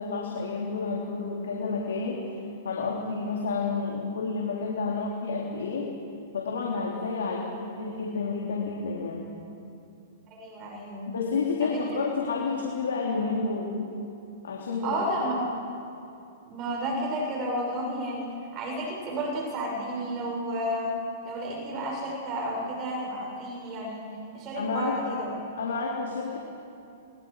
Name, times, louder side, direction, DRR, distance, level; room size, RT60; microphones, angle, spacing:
voice 1, 0.0-2.3 2.6-5.9 6.3-9.3 11.1-13.7 14.4-15.0 24.6-25.2 25.6-26.4, left 4 dB, 85° left, -2 dB, 3.6 m, -30 dB
voice 2, 10.4-11.1 11.6-12.0 14.8-15.4 16.5-21.0 21.2-24.1 24.3-25.3, right 1 dB, 35° right, -1 dB, 6.5 m, -32 dB
29.5 x 23.5 x 5.0 m, 2.6 s
hypercardioid pair, 130°, 0 cm